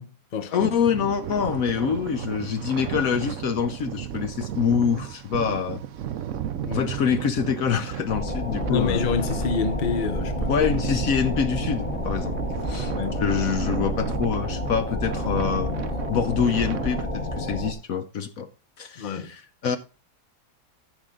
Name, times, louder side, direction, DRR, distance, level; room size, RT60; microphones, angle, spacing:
voice 1, 0.0-0.7 6.3-7.1 8.4-10.7 12.8-13.2 19.0-19.3, left 6 dB, 40° left, 0.8 m, -29 dB
voice 2, 0.5-5.8 6.7-9.0 10.5-12.4 12.7-15.7 16.1-18.5 18.8-19.8, left 7 dB, 65° left, 1.1 m, -25 dB
sound 1, 0.6-17.0, right 10 dB, 60° right, 0.9 m, -34 dB
sound 2, 8.1-17.7, left 1 dB, 25° left, 1.2 m, -30 dB
14.5 x 6.5 x 3.8 m
omnidirectional pair, 1.8 m